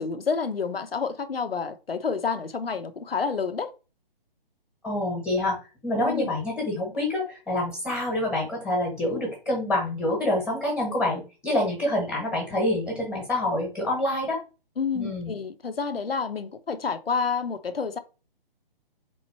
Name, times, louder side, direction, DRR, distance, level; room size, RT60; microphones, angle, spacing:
voice 1, 0.0-3.7 5.9-6.3 14.8-18.0, left 5 dB, 75° left, 0.8 m, -29 dB
voice 2, 4.8-5.6 5.8-14.4 14.9-15.3, left 1 dB, 10° left, 1.2 m, -27 dB
3.8 x 3.1 x 4.3 m
figure-of-eight pair, 140°, 29 cm